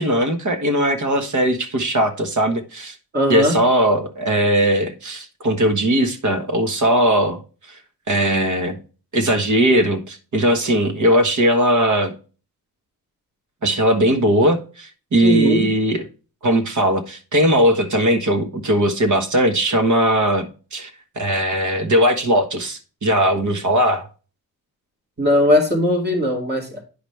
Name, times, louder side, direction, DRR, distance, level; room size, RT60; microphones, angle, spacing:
voice 1, 0.0-3.0 3.3-7.4 7.7-7.8 8.1-8.8 9.1-12.1 13.6-16.0 16.4-20.9 21.1-24.1, right 1 dB, 50° right, 7 dB, 1.4 m, -19 dB
voice 2, 3.1-3.6 15.2-15.7 25.2-26.8, left 1 dB, 25° right, 1 dB, 2.5 m, -19 dB
10.0 x 5.0 x 3.3 m, 0.36 s
wide cardioid pair, 125°, 38 cm